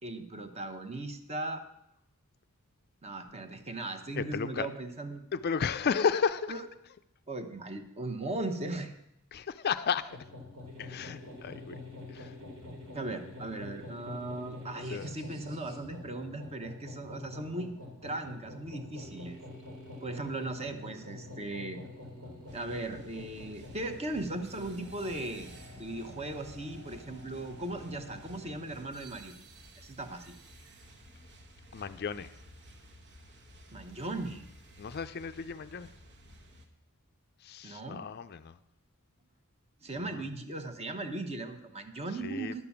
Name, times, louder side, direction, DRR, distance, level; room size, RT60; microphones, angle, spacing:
voice 1, 0.0-1.6 3.0-5.3 6.5-6.7 7.3-8.9 12.9-17.7 18.0-19.4 20.0-21.8 22.5-25.5 25.8-29.3 29.8-30.4 33.7-34.5 37.6-38.0 39.8-42.6, right 2 dB, 30° right, 7 dB, 1.0 m, -38 dB
voice 2, 4.1-4.7 5.3-6.5 9.3-10.1 10.8-11.7 12.1-12.3 14.9-15.1 31.7-32.3 34.8-35.9 37.4-38.6 40.1-40.2 42.2-42.5, left 6 dB, 45° left, 12 dB, 0.4 m, -33 dB
sound 1, 10.1-28.9, left 2 dB, 85° right, 3.1 m, -47 dB
sound 2, 22.5-36.7, right 1 dB, 55° right, 1.3 m, -54 dB
11.0 x 6.8 x 7.1 m, 0.82 s
head